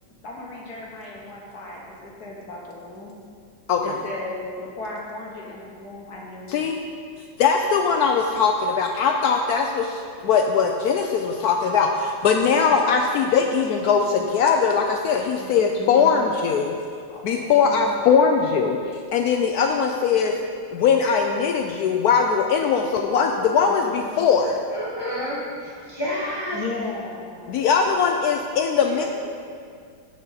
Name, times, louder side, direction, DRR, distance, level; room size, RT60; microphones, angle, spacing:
voice 1, 0.2-3.1 3.8-6.7 15.4-16.2 17.1-18.2 23.7-24.0 26.5-27.6, left 2 dB, 55° left, -2 dB, 1.7 m, -36 dB
voice 2, 7.4-16.7 17.2-18.8 19.1-20.3 20.7-24.6 27.5-29.1, left 6 dB, 80° left, 3 dB, 0.8 m, -20 dB
voice 3, 24.7-26.6 28.9-29.1, left 1 dB, 15° left, -9 dB, 0.9 m, -30 dB
15.0 x 5.3 x 4.0 m, 2.2 s
omnidirectional pair, 2.2 m